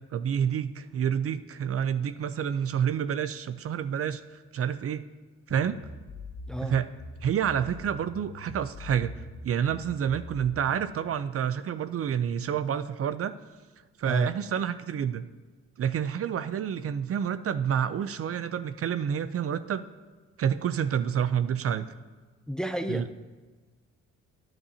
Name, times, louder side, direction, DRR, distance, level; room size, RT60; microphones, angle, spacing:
voice 1, 0.1-4.2 4.5-5.0 5.5-5.8 6.6-6.9 7.2-9.1 9.4-13.3 14.0-15.3 15.8-19.8 20.4-21.9 22.9-23.1, right 8 dB, 50° right, 12 dB, 0.6 m, -28 dB
sound 1, 5.5-10.9, left 2 dB, 60° left, 2.7 m, -43 dB
voice 2, 6.5-6.8 14.0-14.3 22.5-23.1, equal, ahead, 8 dB, 0.6 m, -31 dB
20.5 x 8.7 x 2.8 m, 1.3 s
cardioid pair, 90°, 30 cm